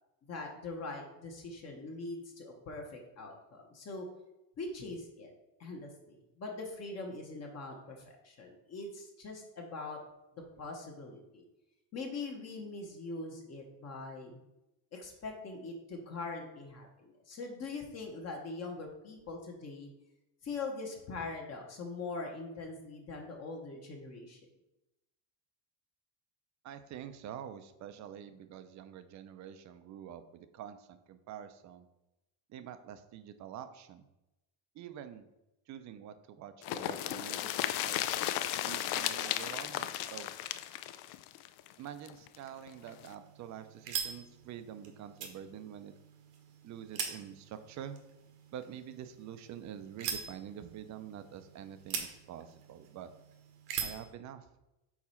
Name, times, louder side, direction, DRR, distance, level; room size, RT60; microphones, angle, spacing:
voice 1, 0.3-4.1 4.6-5.3 5.6-10.0 10.6-11.4 11.9-14.4 14.9-19.9 20.4-24.4, left 3 dB, 35° left, 1 dB, 1.1 m, -42 dB
voice 2, 26.6-31.9 32.5-34.0 34.7-35.3 35.7-37.5 37.8-38.1 38.6-40.3 41.8-45.9 46.6-48.0 48.5-53.1 53.8-54.5, right 9 dB, 40° right, 10 dB, 0.5 m, -46 dB
sound 1, 36.6-42.4 42.7-42.8 43.0-43.1, left 13 dB, 60° left, 0.5 m, -35 dB
sound 2, 42.7-54.1, right 7 dB, 80° right, 1.3 m, -43 dB
4.8 x 4.1 x 5.6 m, 0.95 s
cardioid pair, 145°, 43 cm